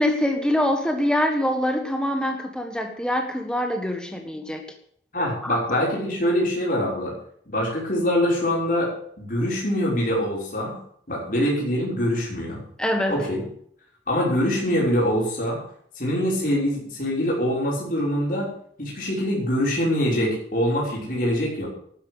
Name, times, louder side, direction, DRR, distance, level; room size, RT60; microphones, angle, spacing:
voice 1, 0.0-4.6 5.4-5.8 12.8-13.2, left 1 dB, 5° left, 4 dB, 1.5 m, -24 dB
voice 2, 5.1-7.1 7.5-8.9 9.2-10.8 11.1-12.6 13.1-13.4 14.1-15.6 16.0-18.5 18.8-21.7, equal, 45° left, -4 dB, 5.9 m, -24 dB
12.5 x 10.0 x 8.2 m, 0.64 s
head